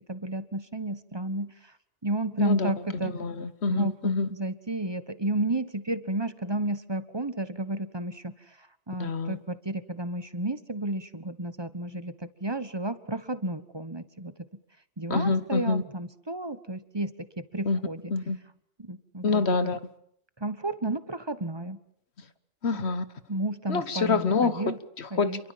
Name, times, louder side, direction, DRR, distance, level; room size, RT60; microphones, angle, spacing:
voice 1, 0.1-1.5 2.0-3.1 3.7-8.3 8.9-14.3 15.0-18.0 18.8-19.5 20.4-21.8 22.7-22.9 23.3-24.8 25.1-25.5, right 1 dB, 20° right, 1.3 m, -32 dB
voice 2, 2.4-2.7 3.0-4.3 9.0-9.4 15.1-15.8 17.6-17.8 18.1-18.4 19.2-19.8 22.6-23.0 23.7-25.5, left 4 dB, 60° left, 1.6 m, -26 dB
29.0 x 23.0 x 7.6 m
omnidirectional pair, 1.2 m